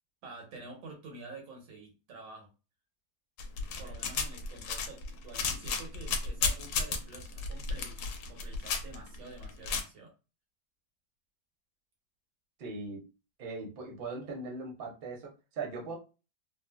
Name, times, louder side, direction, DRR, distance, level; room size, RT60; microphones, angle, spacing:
voice 1, 0.2-2.5 3.8-8.0 8.3-10.1, right 3 dB, 85° right, 0 dB, 1.7 m, -48 dB
sound 1, 3.4-9.8, left 5 dB, 85° left, 1.3 m, -33 dB
voice 2, 12.6-13.0 13.4-16.0, right 3 dB, 45° right, -1 dB, 0.7 m, -39 dB
3.6 x 2.0 x 2.2 m, 0.31 s
omnidirectional pair, 1.9 m